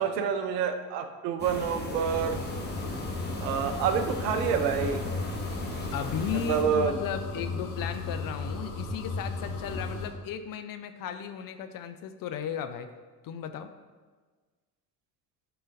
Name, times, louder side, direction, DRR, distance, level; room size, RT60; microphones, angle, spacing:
voice 1, 0.0-2.4 3.4-5.0 6.3-7.0, right 7 dB, 75° right, 8 dB, 0.7 m, -28 dB
sound 1, 1.4-6.6, left 2 dB, 20° left, 1.3 m, -37 dB
sound 2, 2.0-10.1, left 3 dB, 80° left, 1.2 m, -35 dB
voice 2, 5.9-12.9 13.2-13.7, left 8 dB, 45° left, 9 dB, 0.6 m, -35 dB
10.5 x 3.9 x 2.6 m, 1.4 s
hypercardioid pair, 55°, 48 cm